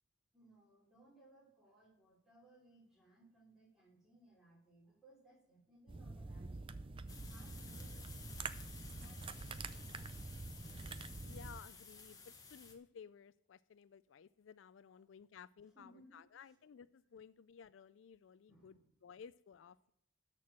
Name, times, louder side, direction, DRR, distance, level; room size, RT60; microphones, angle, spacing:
voice 1, 0.3-8.3 8.9-10.1 14.9-15.0 15.7-16.6 18.5-18.8, right 1 dB, ahead, -2 dB, 3.1 m, -65 dB
sound 1, 5.9-11.6, right 3 dB, 25° right, 0.4 m, -47 dB
sound 2, 7.1-12.7, left 5 dB, 20° left, 1.5 m, -55 dB
voice 2, 11.2-12.2 12.5-19.9, left 7 dB, 75° left, 17 dB, 0.4 m, -57 dB
13.0 x 4.5 x 7.4 m, 0.74 s
head